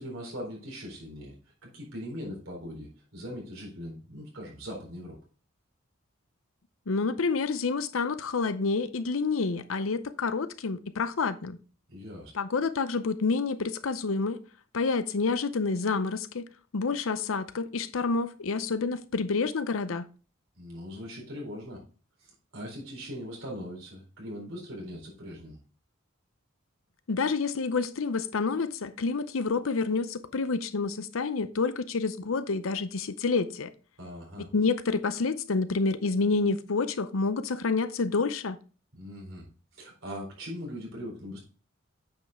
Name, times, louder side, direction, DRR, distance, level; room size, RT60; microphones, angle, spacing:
voice 1, 0.0-1.3 1.6-5.2 11.9-12.3 20.5-21.8 22.2-25.6 34.0-34.5 38.9-39.5 39.7-41.4, equal, 65° right, 4.1 m, -40 dB
voice 2, 6.9-11.6 12.3-14.4 14.7-16.4 16.7-20.1 27.1-33.7 34.4-38.6, left 4 dB, 80° left, 0.7 m, -28 dB
9.0 x 5.4 x 3.7 m
head